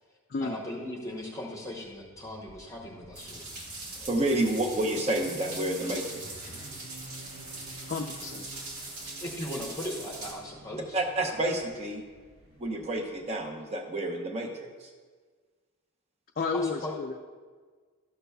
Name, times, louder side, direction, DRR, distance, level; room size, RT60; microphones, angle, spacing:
voice 1, 0.4-3.5 9.2-11.0 16.5-17.0, left 1 dB, 15° left, -2 dB, 0.8 m, -38 dB
Motorcycle, 1.8-13.5, equal, 60° right, 1.9 m, -51 dB
sound 1, 3.1-10.3, right 2 dB, 90° right, 1.9 m, -41 dB
voice 2, 4.0-6.2 10.7-12.0 12.6-14.9, right 1 dB, 30° right, 2 dB, 0.8 m, -30 dB
voice 3, 7.8-8.4 16.4-17.2, left 4 dB, 40° left, 2 dB, 0.4 m, -32 dB
12.5 x 6.8 x 2.2 m, 1.5 s
head